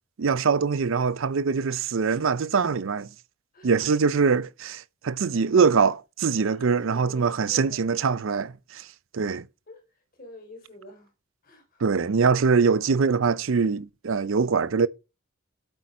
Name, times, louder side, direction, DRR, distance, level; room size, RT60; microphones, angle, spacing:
voice 1, 0.2-3.1 3.6-8.9 9.1-9.4 11.8-14.9, right 5 dB, 65° right, 0.5 m, -23 dB
voice 2, 6.4-8.1 9.7-9.8 10.2-11.1 11.4-11.8, equal, 40° left, 3.5 m, -47 dB
9.0 x 8.2 x 4.2 m
head